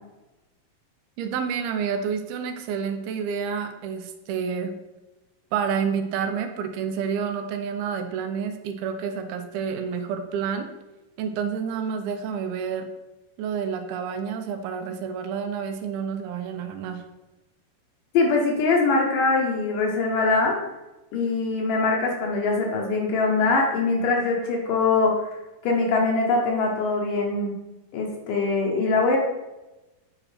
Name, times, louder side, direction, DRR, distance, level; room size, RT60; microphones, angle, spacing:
voice 1, 1.2-4.8 5.5-10.7 11.2-12.9 13.4-17.0, right 6 dB, 80° right, 6 dB, 2.5 m, -29 dB
voice 2, 18.1-20.6 21.1-25.3 25.6-27.5 27.9-29.2, left 3 dB, 70° left, 0 dB, 2.3 m, -22 dB
8.4 x 4.9 x 3.3 m, 1.0 s
omnidirectional pair, 4.4 m